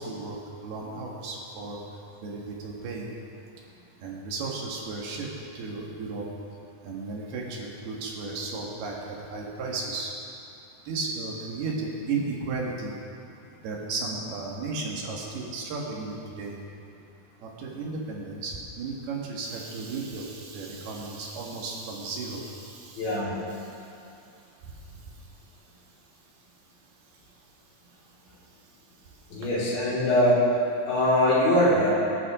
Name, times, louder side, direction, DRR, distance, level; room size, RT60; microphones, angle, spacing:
voice 1, 0.0-1.8 2.2-3.1 4.0-5.3 5.6-6.3 6.8-10.1 10.9-12.9 13.6-16.6 17.4-23.2 23.6-23.8, right 3 dB, 65° right, -2 dB, 3.4 m, -34 dB
voice 2, 23.0-23.3 29.3-30.4 30.9-31.9, left 1 dB, 80° left, -8 dB, 6.6 m, -22 dB
24.0 x 11.5 x 3.7 m, 2.7 s
omnidirectional pair, 5.1 m